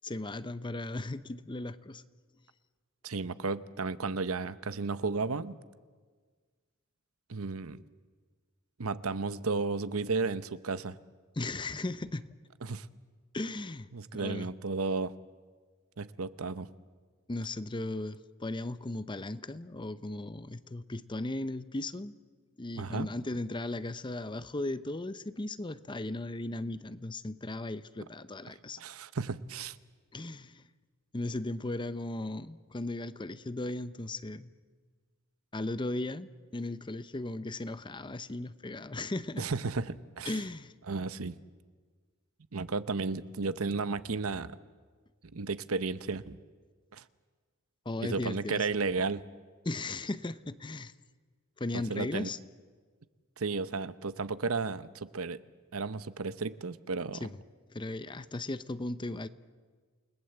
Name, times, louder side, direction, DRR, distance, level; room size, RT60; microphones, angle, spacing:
voice 1, 0.0-2.0 11.4-12.3 13.3-13.9 14.1-14.5 17.3-22.1 22.6-28.8 30.1-30.6 31.1-34.5 35.5-39.4 40.2-40.7 47.8-48.7 49.6-50.9 51.6-52.4 57.2-57.4 57.7-59.3, left 2 dB, 20° left, 14 dB, 0.7 m, -36 dB
voice 2, 3.0-5.6 7.3-7.8 8.8-11.0 12.6-12.9 13.9-15.1 16.0-16.7 22.8-23.1 28.5-29.8 39.4-40.4 40.9-41.4 42.5-44.6 45.3-46.4 46.9-47.0 48.0-49.2 51.7-52.3 53.4-55.4 55.7-57.3, right 4 dB, 80° right, 14 dB, 0.9 m, -33 dB
29.0 x 19.5 x 7.9 m, 1.5 s
head